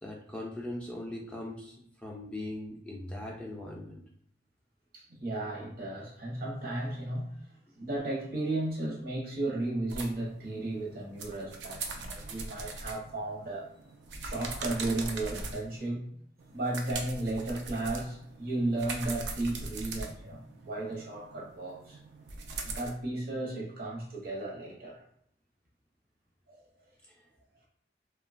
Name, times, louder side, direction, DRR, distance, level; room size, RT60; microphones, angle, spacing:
voice 1, 0.0-1.7 2.0-4.0, left 1 dB, 5° left, -2 dB, 0.3 m, -40 dB
voice 2, 4.9-7.4 7.8-13.7 14.2-16.1 16.5-22.0 22.6-25.0 26.5-26.6, right 2 dB, 55° right, -2 dB, 0.8 m, -34 dB
sound 1, 9.9-15.9 16.4-22.9, right 3 dB, 80° right, 0.4 m, -41 dB
2.8 x 2.2 x 2.4 m, 0.68 s
head